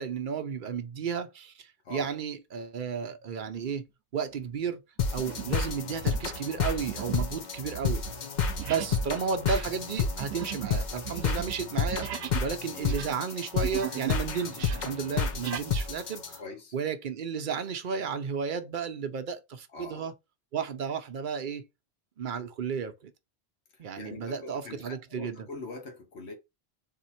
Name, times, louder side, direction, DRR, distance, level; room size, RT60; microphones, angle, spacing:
voice 1, 0.0-3.9 4.1-4.8 5.1-8.0 8.6-16.4 16.7-20.1 20.5-21.7 22.2-23.1 23.8-25.5, right 6 dB, 55° right, 0.7 m, -33 dB
sound 1, 3.6-3.8 4.3-4.6 5.2-5.6 5.9-12.5 12.8-14.2 14.5-15.7, right 12 dB, 85° right, 0.9 m, -39 dB
sound 2, 5.0-16.4, left 5 dB, 50° left, 0.7 m, -31 dB
voice 2, 16.4-16.7 19.7-20.1 24.0-26.3, left 3 dB, 90° left, 1.4 m, -43 dB
3.8 x 2.9 x 4.2 m
omnidirectional pair, 1.1 m